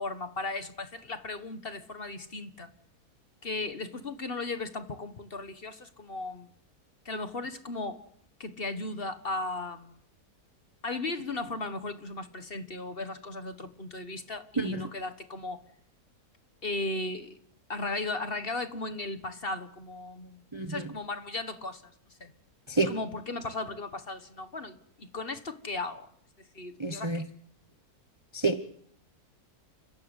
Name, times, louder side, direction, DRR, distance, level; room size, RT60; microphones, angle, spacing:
voice 1, 0.0-2.7 3.4-6.5 7.0-8.0 8.4-10.0 10.8-15.6 16.6-17.4 17.7-20.4 20.7-21.9 22.2-22.3 22.9-26.1 26.5-27.2, left 2 dB, 40° left, 1.5 m, -36 dB
voice 2, 14.6-14.9 20.5-20.9 22.7-22.9 26.8-27.2 28.3-28.6, right 3 dB, 20° right, 0.9 m, -29 dB
29.0 x 15.5 x 8.1 m
omnidirectional pair, 1.6 m